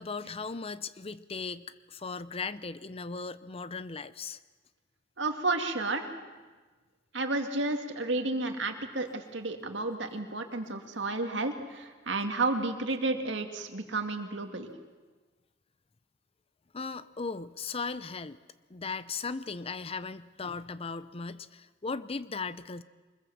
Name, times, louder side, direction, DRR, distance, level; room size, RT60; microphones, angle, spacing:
voice 1, 0.0-4.4 16.7-18.4 18.7-22.8, left 4 dB, 30° left, 15 dB, 0.6 m, -37 dB
voice 2, 5.2-6.1 7.1-14.7, right 2 dB, 70° right, 5 dB, 2.3 m, -31 dB
24.5 x 21.0 x 7.2 m, 1.3 s
head